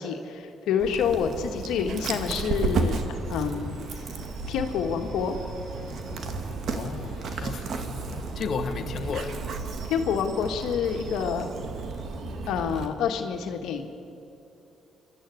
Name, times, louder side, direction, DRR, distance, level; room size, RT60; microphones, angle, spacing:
voice 1, 0.0-4.0 4.5-5.3 8.7-8.8 9.9-11.5 12.5-13.9, left 7 dB, 85° left, 1.7 m, -28 dB
Dog, 0.8-12.9, right 4 dB, 65° right, 2.1 m, -33 dB
sound 1, 2.5-7.5, right 1 dB, 85° right, 7.2 m, -41 dB
voice 2, 6.7-9.4, left 5 dB, 60° left, 1.4 m, -34 dB
27.5 x 12.5 x 9.6 m
cardioid pair, 90°, 0 cm